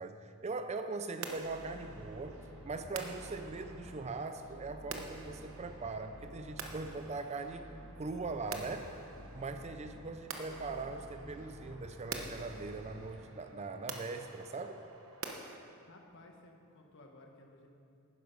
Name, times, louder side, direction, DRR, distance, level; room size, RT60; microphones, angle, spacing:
voice 1, 0.0-7.7 8.0-8.9 9.3-14.8, right 3 dB, 30° right, 8 dB, 0.5 m, -41 dB
sound 1, 1.2-15.6, right 4 dB, 60° right, 1.0 m, -48 dB
sound 2, 1.3-13.5, equal, 85° left, 3.0 m, -52 dB
voice 2, 15.9-17.7, left 2 dB, 55° left, 2 dB, 1.4 m, -57 dB
11.0 x 9.9 x 5.3 m, 2.5 s
head